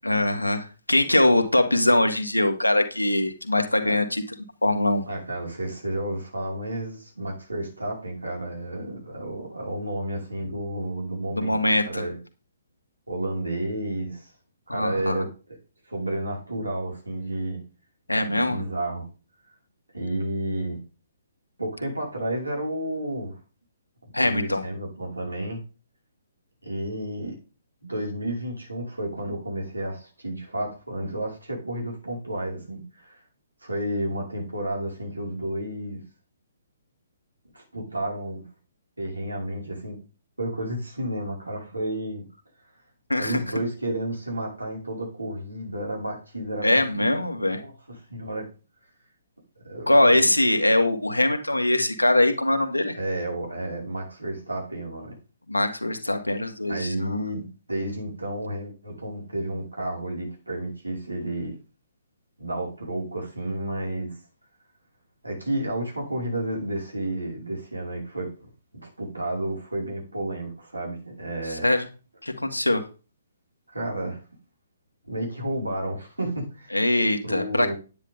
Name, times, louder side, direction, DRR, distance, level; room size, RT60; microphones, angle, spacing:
voice 1, 0.0-4.2 4.6-5.0 11.4-12.0 14.7-15.2 18.1-18.6 24.1-24.6 43.1-43.4 46.6-47.6 49.9-53.0 55.5-57.2 71.5-71.9 72.2-72.8 76.7-77.7, left 1 dB, 85° left, 5 dB, 1.9 m, -22 dB
voice 2, 5.1-11.5 11.9-12.2 13.1-14.3 14.7-15.3 15.9-17.6 18.3-19.1 19.9-20.8 21.6-23.4 24.0-25.6 26.6-27.4 27.8-33.2 33.6-36.0 37.5-38.5 39.0-40.0 40.4-42.3 43.2-47.1 47.5-48.5 49.6-50.3 52.9-55.1 56.7-61.6 62.4-64.2 65.2-68.3 68.7-71.7 73.7-74.2 75.0-76.7 77.2-77.7, right 1 dB, 80° right, -1 dB, 5.8 m, -31 dB
10.0 x 9.6 x 3.8 m, 0.34 s
figure-of-eight pair, 130°, 0 cm